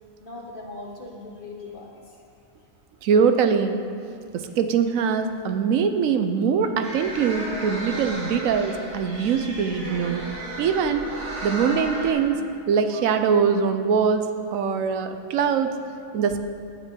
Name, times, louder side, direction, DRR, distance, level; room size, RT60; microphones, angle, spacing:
voice 1, 0.2-2.2, left 2 dB, 40° left, -2 dB, 1.5 m, -39 dB
voice 2, 3.0-3.7 4.3-10.3 10.6-11.1 11.4-12.4 12.7-14.3 14.5-15.7 16.1-16.4, right 6 dB, 85° right, 8 dB, 1.0 m, -22 dB
sound 1, 6.8-12.1, right 1 dB, 65° right, 1.9 m, -34 dB
12.0 x 9.1 x 3.6 m, 2.5 s
omnidirectional pair, 1.4 m